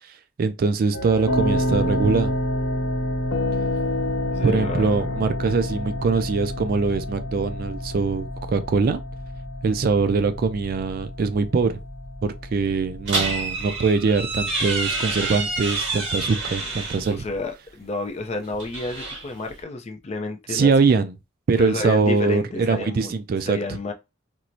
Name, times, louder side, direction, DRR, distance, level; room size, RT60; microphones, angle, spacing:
voice 1, 0.4-2.3 4.4-9.0 9.6-11.8 12.2-17.2 20.5-21.1 21.5-23.6, right 4 dB, 45° right, 0.3 m, -22 dB
sound 1, 0.9-17.4, left 1 dB, 65° left, 0.7 m, -29 dB
voice 2, 4.3-5.3 17.1-20.7 21.6-23.1 23.5-23.9, left 2 dB, 30° left, 0.4 m, -30 dB
sound 2, 13.1-17.1 18.4-19.6, right 3 dB, 70° right, 1.2 m, -28 dB
4.4 x 2.0 x 2.6 m
head